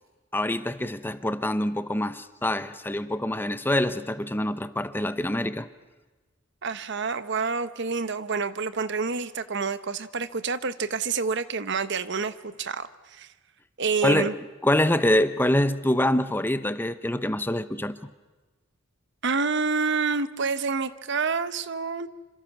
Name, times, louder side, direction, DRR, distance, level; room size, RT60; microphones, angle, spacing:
voice 1, 0.3-5.7 14.0-14.4 14.6-18.0, left 1 dB, 10° left, 0.8 m, -25 dB
voice 2, 6.6-13.3 13.8-14.3 19.2-22.1, right 4 dB, 60° right, 1.1 m, -28 dB
27.5 x 26.5 x 6.0 m
head